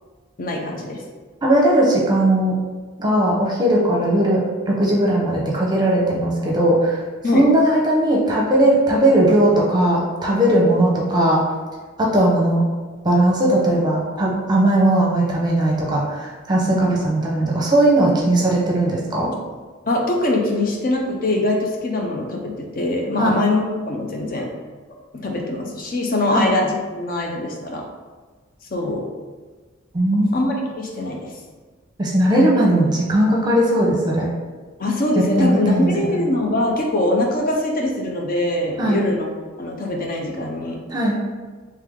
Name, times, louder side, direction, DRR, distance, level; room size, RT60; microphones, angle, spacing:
voice 1, 0.4-1.0 7.2-7.4 10.5-10.7 16.9-17.0 19.9-24.5 25.1-27.8 28.7-29.1 30.3-31.3 34.8-39.3 39.6-40.8, left 2 dB, 45° left, 0 dB, 0.6 m, -23 dB
voice 2, 1.4-2.6 3.0-7.0 7.3-11.4 12.0-12.6 13.0-19.3 23.2-23.4 26.3-26.5 29.9-30.3 32.0-34.3 35.4-36.2 38.8-39.0 40.9-41.2, right 1 dB, 20° right, -3 dB, 0.8 m, -18 dB
3.5 x 3.2 x 3.6 m, 1.4 s
head